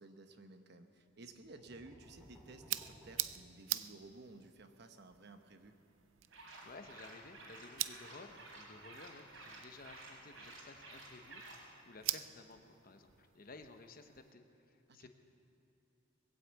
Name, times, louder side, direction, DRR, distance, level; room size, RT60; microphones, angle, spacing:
voice 1, 0.0-5.8 14.9-15.1, right 2 dB, 55° right, 7 dB, 1.0 m, -55 dB
sound 1, 1.2-4.1, equal, 5° right, 2.9 m, -61 dB
sound 2, 2.0-14.3, right 15 dB, 70° right, 0.4 m, -46 dB
sound 3, 6.3-11.7, right 2 dB, 85° right, 3.4 m, -53 dB
voice 2, 6.6-15.1, left 3 dB, 45° left, 6 dB, 1.0 m, -55 dB
20.5 x 8.3 x 8.1 m, 3.0 s
head